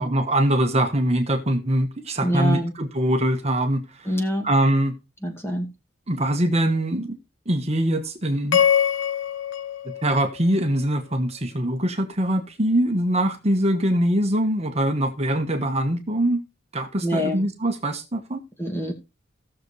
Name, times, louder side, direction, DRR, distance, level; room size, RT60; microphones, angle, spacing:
voice 1, 0.0-4.1 4.4-4.9 6.1-7.2 7.5-8.6 10.0-16.4 16.7-18.4, right 1 dB, 35° right, 1.2 m, -23 dB
voice 2, 2.2-2.7 4.1-4.5 5.2-5.7 17.0-17.5 18.6-18.9, equal, 15° left, 2.2 m, -25 dB
sound 1, 8.5-10.9, left 9 dB, 65° left, 0.6 m, -24 dB
16.5 x 6.7 x 3.2 m
head